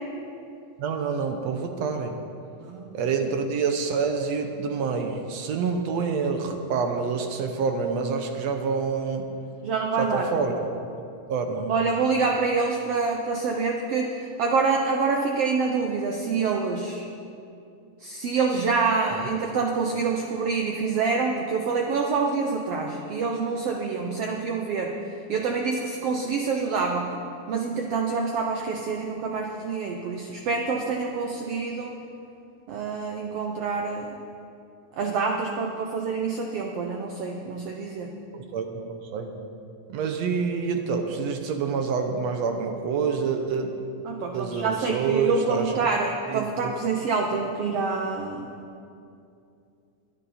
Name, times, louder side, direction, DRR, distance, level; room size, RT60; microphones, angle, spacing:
voice 1, 0.8-2.2 2.9-9.3 10.0-10.8 11.3-11.7 19.1-19.2 38.3-39.4 39.9-43.7 44.3-45.7 46.3-46.7, right 5 dB, 70° right, 5 dB, 1.7 m, -27 dB
voice 2, 2.6-3.0 9.6-10.3 11.7-17.1 18.0-25.0 25.3-27.2 27.5-32.0 32.7-34.2 35.0-38.1 44.0-48.5, right 4 dB, 85° right, 2 dB, 1.3 m, -26 dB
22.5 x 9.7 x 4.2 m, 2.6 s
omnidirectional pair, 3.9 m